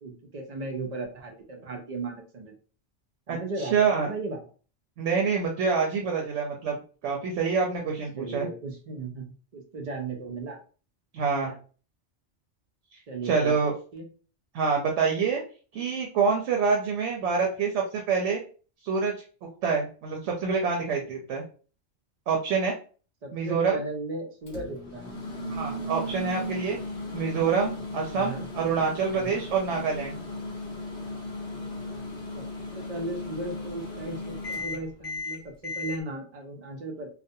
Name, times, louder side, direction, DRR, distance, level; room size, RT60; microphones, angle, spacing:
voice 1, 0.0-2.5 3.3-4.4 8.1-9.3 9.5-10.6 11.4-11.6 13.1-14.1 23.2-25.2 28.1-28.5 29.1-29.4 32.3-32.4 32.7-37.1, right 2 dB, 50° right, 2 dB, 0.5 m, -36 dB
voice 2, 3.3-4.1 5.0-8.5 11.1-11.5 13.2-13.7 14.5-15.4 15.7-18.4 18.8-19.1 19.6-21.4 22.3-22.7 23.3-23.8 25.5-26.8 27.1-30.2, right 5 dB, 85° right, 0 dB, 0.9 m, -26 dB
Microwave oven, 24.5-36.0, left 1 dB, 60° left, 0.8 m, -36 dB
2.4 x 2.0 x 2.6 m, 0.39 s
omnidirectional pair, 1.2 m